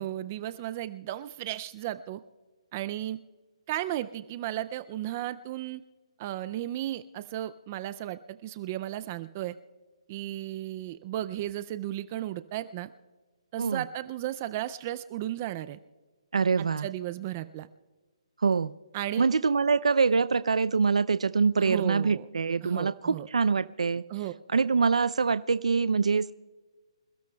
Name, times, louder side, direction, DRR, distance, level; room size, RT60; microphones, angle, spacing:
voice 1, 0.0-2.2 2.7-3.2 3.7-5.8 6.2-9.6 10.1-12.9 13.5-15.8 16.6-17.7 18.9-19.3 21.6-22.3 22.6-23.3 24.1-24.3, right 13 dB, 20° right, 12 dB, 0.3 m, -34 dB
voice 2, 16.3-16.9 18.4-18.7 19.2-24.0 24.5-26.3, right 5 dB, 90° right, 13 dB, 0.5 m, -25 dB
27.0 x 16.0 x 2.3 m, 1.3 s
hypercardioid pair, 170°, 3 cm